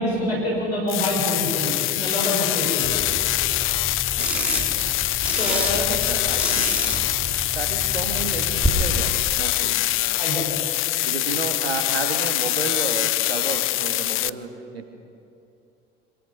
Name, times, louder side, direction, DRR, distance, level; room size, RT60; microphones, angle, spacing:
voice 1, 0.0-2.9 5.3-6.0 10.2-10.6, left 1 dB, 90° left, -3 dB, 6.9 m, -26 dB
sound 1, 0.9-14.3, left 16 dB, 45° left, 0.5 m, -24 dB
sound 2, 2.8-8.7, right 1 dB, 5° right, 4.2 m, -30 dB
voice 2, 4.2-4.9 5.5-6.8 7.5-9.8 11.0-14.9, right 4 dB, 90° right, 5 dB, 1.8 m, -32 dB
26.0 x 22.0 x 5.7 m, 2.6 s
figure-of-eight pair, 60°, 31 cm